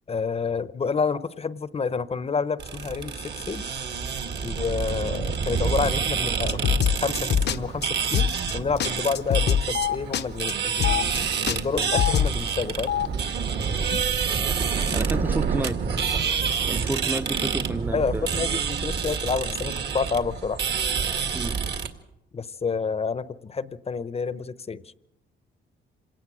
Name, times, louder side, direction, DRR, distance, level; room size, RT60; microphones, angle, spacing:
voice 1, 0.1-3.7 4.4-6.6 7.0-11.1 11.5-12.9 17.9-20.6 22.3-24.8, left 5 dB, 30° left, 16 dB, 0.8 m, -29 dB
sound 1, 2.6-21.9, right 6 dB, 60° right, 2.1 m, -28 dB
sound 2, 6.5-7.6 7.8-7.9 8.1-8.5 8.8-8.9 9.1-9.9 10.1-10.2 10.5-10.6 10.8-11.2 11.5-12.3, left 8 dB, 60° left, 0.8 m, -23 dB
Telephone, 6.9-7.0 7.3-7.5 8.3-8.5 8.8-8.9 9.6-10.0 10.7-11.0 11.8-12.1 12.7-13.1 13.9-14.0 14.3-15.0, left 11 dB, 75° left, 1.3 m, -28 dB
voice 2, 14.9-15.8 16.7-18.3 21.3-21.6, right 2 dB, 10° right, 12 dB, 0.7 m, -30 dB
26.5 x 18.0 x 6.3 m, 0.89 s
cardioid pair, 90°, 20 cm